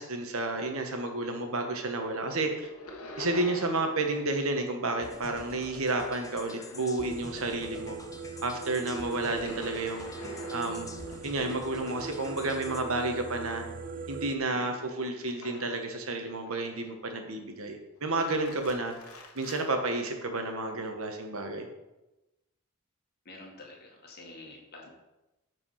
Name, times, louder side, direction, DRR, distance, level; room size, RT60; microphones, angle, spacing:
voice 1, 0.0-2.7 3.2-8.0 8.4-10.1 10.5-10.9 11.2-13.7 14.1-18.9 19.3-21.7, right 2 dB, 70° right, 4 dB, 1.4 m, -31 dB
sound 1, 1.1-1.8 2.1-4.1 4.4-7.3 7.6-16.0 16.4-17.1 18.0-19.7, left 2 dB, 80° left, 1.4 m, -48 dB
sound 2, 5.0-12.8, left 2 dB, 15° left, 0.7 m, -48 dB
sound 3, 7.0-14.4, right 4 dB, 40° right, 0.5 m, -41 dB
voice 2, 23.2-24.9, left 2 dB, 45° left, -1 dB, 2.0 m, -48 dB
9.6 x 4.9 x 5.8 m, 1.0 s
head